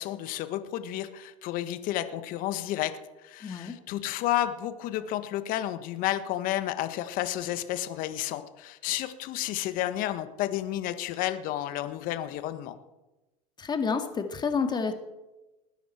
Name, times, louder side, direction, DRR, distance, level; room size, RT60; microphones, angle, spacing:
voice 1, 0.0-2.9 3.2-12.8, left 13 dB, 55° left, 10 dB, 1.4 m, -31 dB
voice 2, 3.4-3.8 13.6-14.9, left 5 dB, 25° left, 6 dB, 2.0 m, -29 dB
20.0 x 10.0 x 4.5 m, 1.0 s
hypercardioid pair, 90°, 18 cm